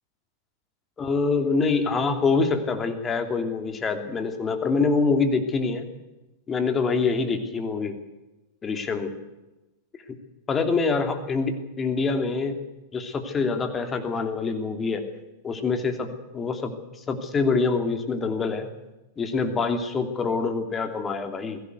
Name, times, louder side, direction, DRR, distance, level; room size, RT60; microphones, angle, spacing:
voice 1, 1.0-5.9 6.5-7.9 8.6-9.1 10.5-12.6 12.9-15.0 15.4-16.1 16.3-16.7 17.1-18.7 19.2-21.6, left 4 dB, 20° left, 6 dB, 3.0 m, -25 dB
21.5 x 17.0 x 8.1 m, 1.0 s
figure-of-eight pair, 90°, 0 cm